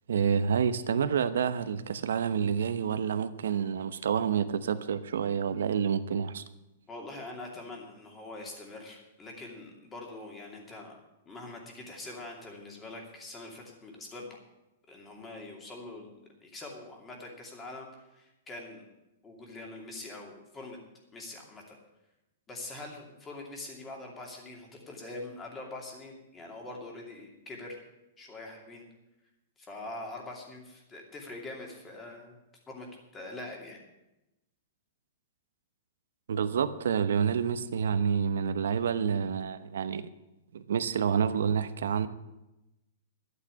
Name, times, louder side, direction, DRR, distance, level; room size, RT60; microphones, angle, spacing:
voice 1, 0.1-6.4 36.3-40.0 40.5-42.1, right 7 dB, 90° right, 11 dB, 0.9 m, -28 dB
voice 2, 6.9-11.0 11.3-14.3 14.9-18.9 19.2-20.8 21.1-21.8 22.5-27.8 28.2-28.8 29.6-32.3 32.7-32.9 33.1-33.8, left 2 dB, 15° left, 1 dB, 2.6 m, -44 dB
12.0 x 8.5 x 8.4 m, 0.95 s
hypercardioid pair, 160°, 0 cm